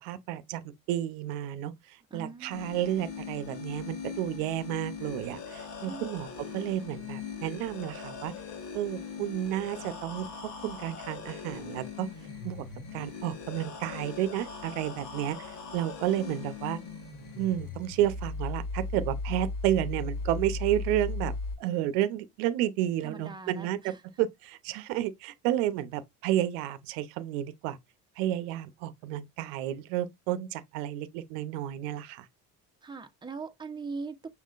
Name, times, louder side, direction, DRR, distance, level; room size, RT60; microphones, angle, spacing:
voice 1, 0.0-0.6 0.9-6.3 6.5-8.3 8.7-10.3 10.6-12.1 12.4-12.6 12.9-16.8 17.4-21.3 21.6-27.8 28.2-32.3, right 12 dB, 85° right, 0.7 m, -31 dB
voice 2, 2.1-2.6 5.9-6.1 19.3-19.4 23.0-24.0 24.9-25.0 32.8-34.3, right 4 dB, 10° right, 0.8 m, -41 dB
sound 1, 2.5-21.5, left 4 dB, 70° left, 2.0 m, -38 dB
6.1 x 3.7 x 2.4 m
supercardioid pair, 90°, 43 cm